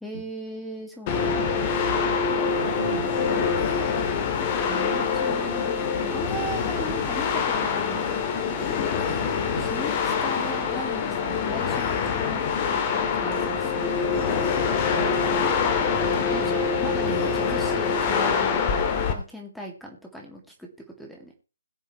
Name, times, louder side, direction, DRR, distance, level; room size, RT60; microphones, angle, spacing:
voice 1, 0.0-1.6 4.6-8.8 9.6-12.4 12.9-14.5 16.3-18.7 19.1-20.7 21.0-21.3, right 1 dB, ahead, 1 dB, 2.2 m, -38 dB
sound 1, 1.1-19.1, left 6 dB, 30° left, 1.9 m, -25 dB
voice 2, 2.6-3.5 9.0-9.8 14.9-15.2, right 4 dB, 65° right, 5 dB, 2.3 m, -36 dB
21.5 x 7.2 x 3.1 m, 0.34 s
figure-of-eight pair, 140°, 0 cm